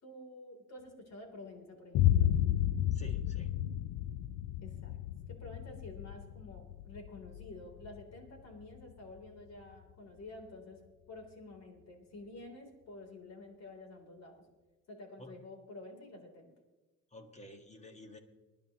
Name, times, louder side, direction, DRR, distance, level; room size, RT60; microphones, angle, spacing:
voice 1, 0.0-2.3 4.6-5.0 5.3-10.8 11.1-14.4 14.9-16.5, left 2 dB, 60° left, 3 dB, 3.7 m, -50 dB
Boom, 1.9-9.8, left 12 dB, 85° left, 0.6 m, -33 dB
voice 2, 2.9-3.5 15.2-15.4 17.1-18.2, left 1 dB, 20° left, 5 dB, 1.8 m, -51 dB
25.0 x 11.0 x 3.1 m, 1.2 s
cardioid pair, 90°, 30 cm